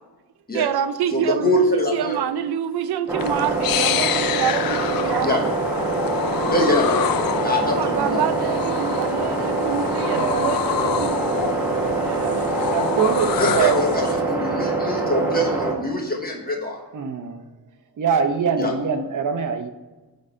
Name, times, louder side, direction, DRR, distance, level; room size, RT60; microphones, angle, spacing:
voice 1, 0.5-5.5 7.3-11.2 12.0-12.5, right 9 dB, 80° right, 12 dB, 0.6 m, -27 dB
voice 2, 1.1-2.2 5.2-5.4 6.5-7.0 7.4-8.3 13.4-16.8 18.6-18.7, left 1 dB, 25° left, 0 dB, 1.2 m, -23 dB
sound 1, 3.1-15.7, right 3 dB, 5° right, 1.5 m, -24 dB
sound 2, 3.2-14.2, left 11 dB, 65° left, 0.5 m, -28 dB
voice 3, 10.1-10.5 12.7-13.8 16.9-17.4 18.0-19.7, right 6 dB, 55° right, 7 dB, 0.9 m, -23 dB
8.7 x 4.1 x 5.5 m, 1.2 s
wide cardioid pair, 145°, 38 cm